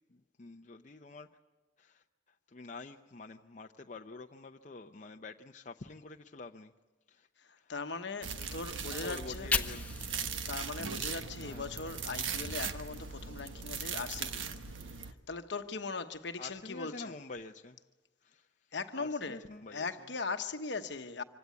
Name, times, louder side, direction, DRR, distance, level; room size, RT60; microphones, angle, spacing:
voice 1, 0.1-1.3 1.8-2.0 2.5-6.7 7.1-7.3 7.6-7.7 8.9-10.0 10.3-10.4 11.3-11.9 16.4-17.8 18.2-18.5 18.9-20.1, left 3 dB, 40° left, 0.7 m, -47 dB
voice 2, 7.7-9.5 10.5-14.4 15.3-17.1 18.7-19.4 19.7-21.2, left 4 dB, 65° left, 1.1 m, -39 dB
sound 1, 8.2-15.1, right 6 dB, 85° right, 1.3 m, -39 dB
Fire, 9.1-12.3 12.7-14.7, left 3 dB, 10° left, 1.2 m, -40 dB
25.5 x 16.5 x 9.4 m
head